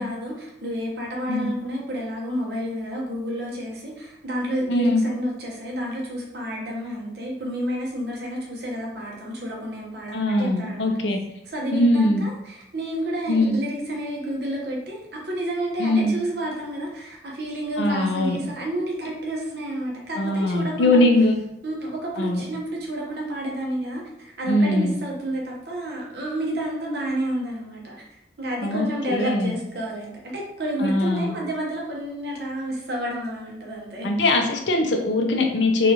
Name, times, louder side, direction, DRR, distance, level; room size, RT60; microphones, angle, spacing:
voice 1, 0.0-10.9 11.5-21.0 21.6-27.9 28.4-34.1, right 1 dB, 65° right, -2 dB, 1.0 m, -30 dB
voice 2, 4.7-5.0 10.1-11.2 11.7-12.2 13.3-13.6 15.8-16.1 17.8-18.4 20.2-21.4 22.2-22.4 24.5-25.0 28.6-29.5 30.8-31.3 34.0-35.9, left 2 dB, 80° left, 3 dB, 0.6 m, -21 dB
4.1 x 2.4 x 2.8 m, 0.84 s
head